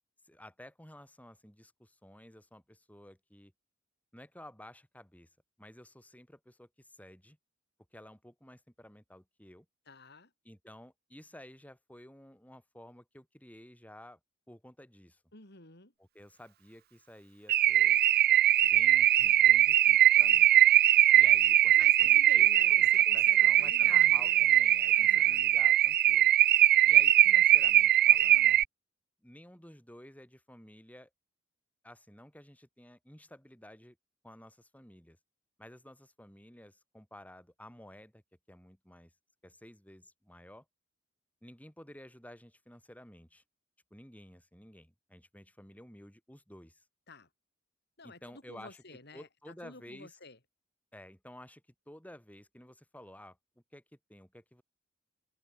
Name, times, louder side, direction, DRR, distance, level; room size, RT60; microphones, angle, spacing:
voice 1, 0.2-3.5 4.1-5.3 5.6-7.4 7.9-9.7 10.4-14.2 14.5-15.2 16.0-18.0 18.6-20.5 21.1-22.1 22.3-26.3 26.8-28.6 29.2-31.1 31.8-34.0 34.2-35.2 35.6-38.2 38.5-39.1 39.4-40.7 41.4-43.4 43.9-46.8 48.0-48.8 49.1-50.2 50.9-54.6, left 1 dB, 10° left, 6.9 m, -53 dB
voice 2, 9.9-10.3 15.3-15.9 21.8-24.4 24.9-25.5 47.1-47.3 48.0-50.4, left 3 dB, 55° left, 6.0 m, -50 dB
Car / Alarm, 17.5-28.6, right 13 dB, 50° right, 0.6 m, -22 dB
head